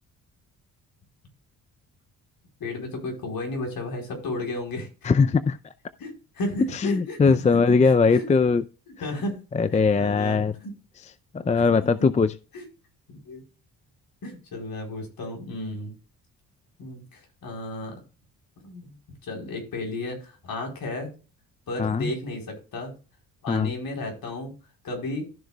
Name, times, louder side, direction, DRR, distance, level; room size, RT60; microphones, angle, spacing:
voice 1, 2.6-4.9 6.0-7.3 7.8-8.3 9.0-9.4 9.7-10.7 11.4-11.5 12.5-12.7 13.1-13.4 14.2-15.9 16.8-17.9 18.6-18.9 19.2-21.1 21.7-22.9 23.4-24.5 24.8-25.2, left 2 dB, 60° left, 4.2 m, -33 dB
voice 2, 5.0-5.6 6.7-8.6 9.5-10.5 11.3-12.3 21.8-22.1 23.5-23.7, left 4 dB, 20° left, 0.5 m, -20 dB
14.0 x 6.3 x 2.3 m
supercardioid pair, 70°, 39 cm